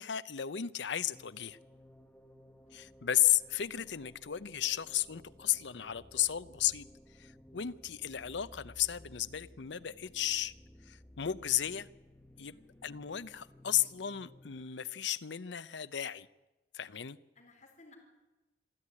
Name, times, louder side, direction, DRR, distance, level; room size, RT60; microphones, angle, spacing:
voice 1, 0.0-1.6 2.7-6.9 7.1-10.5 10.9-11.9 12.4-12.6 12.8-16.3 16.7-17.2, left 12 dB, 80° left, 0.7 m, -34 dB
sound 1, 1.1-14.7, left 1 dB, 10° left, 1.2 m, -57 dB
voice 2, 12.3-12.7 17.3-18.0, left 3 dB, 40° left, 4.5 m, -60 dB
27.0 x 11.5 x 9.8 m
head